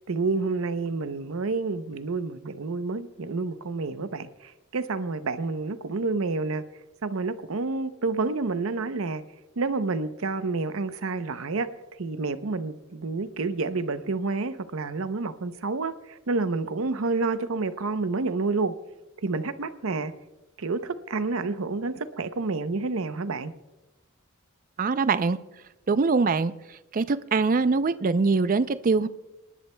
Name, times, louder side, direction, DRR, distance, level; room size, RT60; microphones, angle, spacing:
voice 1, 0.1-6.6 7.0-9.2 9.6-18.7 19.2-20.1 20.6-23.5, right 3 dB, 75° right, 11 dB, 0.7 m, -29 dB
voice 2, 24.8-25.4 25.9-26.5 26.9-29.1, right 4 dB, 40° right, 14 dB, 0.4 m, -23 dB
28.0 x 11.0 x 2.2 m, 1.0 s
head